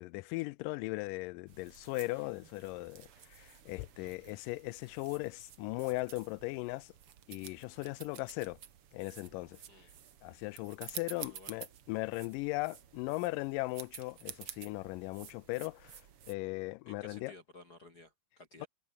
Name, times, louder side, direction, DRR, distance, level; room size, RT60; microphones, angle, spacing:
voice 1, 0.0-6.9 7.3-8.6 8.9-9.6 10.2-16.0 16.3-17.3, left 22 dB, 85° left, 2.2 m, -38 dB
sound 1, 1.5-16.3, right 9 dB, 50° right, 2.2 m, -51 dB
voice 2, 11.3-11.6 16.9-18.7, left 2 dB, 30° left, 3.2 m, -55 dB
omnidirectional pair, 3.8 m